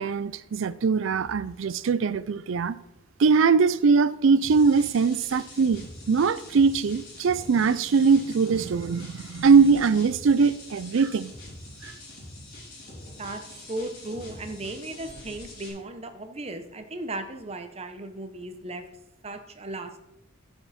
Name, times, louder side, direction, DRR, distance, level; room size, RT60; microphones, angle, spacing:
voice 1, 0.0-2.8 3.2-5.8 6.1-11.3 11.8-11.9, right 5 dB, 70° right, 0.4 m, -21 dB
sound 1, 4.4-15.7, left 1 dB, 50° left, 3.3 m, -44 dB
voice 2, 13.7-18.8 19.2-20.0, right 2 dB, 30° right, 0.8 m, -36 dB
11.5 x 5.9 x 4.2 m
head